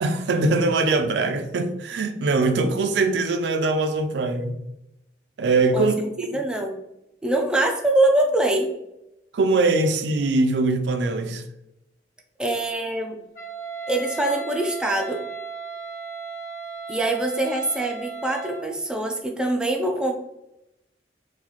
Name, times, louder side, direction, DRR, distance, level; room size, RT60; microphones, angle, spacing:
voice 1, 0.0-4.6 5.4-6.4 9.3-11.4, right 3 dB, 80° right, 0.4 m, -22 dB
voice 2, 6.3-6.7 7.2-8.7 12.4-13.2 13.9-15.2 16.9-20.1, right 1 dB, 5° right, 0.3 m, -23 dB
Wind instrument woodwind instrument, 13.3-18.7, right 5 dB, 55° left, 1.2 m, -36 dB
3.9 x 2.2 x 3.0 m
head